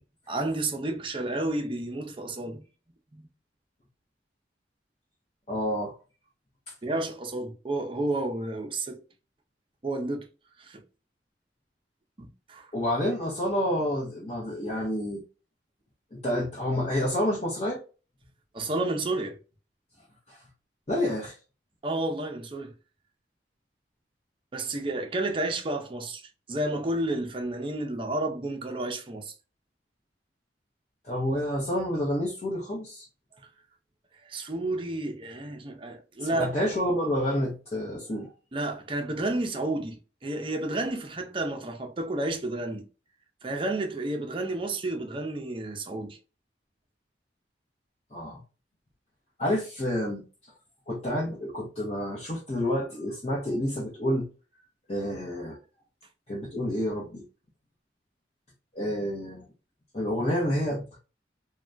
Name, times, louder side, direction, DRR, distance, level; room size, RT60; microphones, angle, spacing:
voice 1, 0.3-2.7 3.1-3.2 6.8-9.0 9.8-10.3 10.6-10.8 12.2-12.7 18.5-19.4 21.8-22.7 24.5-29.3 34.2-36.5 38.5-42.9 43.4-46.2, right 2 dB, 30° right, 0.5 m, -31 dB
voice 2, 5.5-5.9 12.7-15.2 16.1-17.8 20.3-20.4 20.9-21.3 31.0-33.0 36.3-38.3 48.1-48.4 49.4-50.2 50.9-54.3 54.9-55.6 56.3-57.2 58.7-59.5 59.9-60.8, equal, 40° left, 0.8 m, -29 dB
3.3 x 2.2 x 2.5 m
head